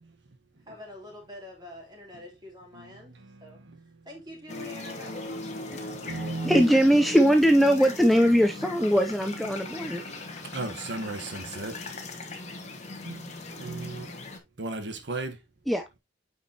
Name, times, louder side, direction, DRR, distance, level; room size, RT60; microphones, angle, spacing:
voice 1, 0.6-3.1 3.4-3.6 4.0-5.8, left 1 dB, 25° right, 3.0 m, -45 dB
voice 2, 3.3-3.8 5.6-6.6 10.5-11.8 12.2-12.3 12.7-14.1 14.6-15.4, right 2 dB, 75° right, 1.2 m, -36 dB
sound 1, 4.5-14.4, left 2 dB, 40° left, 1.4 m, -38 dB
voice 3, 6.1-10.0 15.7-15.8, equal, ahead, 0.5 m, -21 dB
8.4 x 5.1 x 2.8 m
head